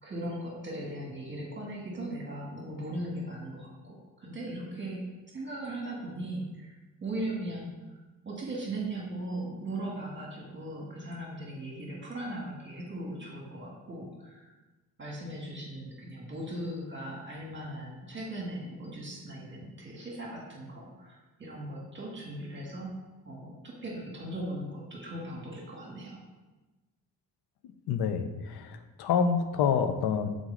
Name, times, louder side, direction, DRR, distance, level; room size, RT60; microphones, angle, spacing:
voice 1, 0.0-5.0 5.3-6.7 7.0-14.5 15.0-22.9 23.2-26.2, right 1 dB, 30° right, -2 dB, 1.6 m, -38 dB
voice 2, 27.9-30.3, left 6 dB, 90° left, 9 dB, 0.6 m, -27 dB
6.3 x 4.0 x 3.8 m, 1.2 s
cardioid pair, 85°, 37 cm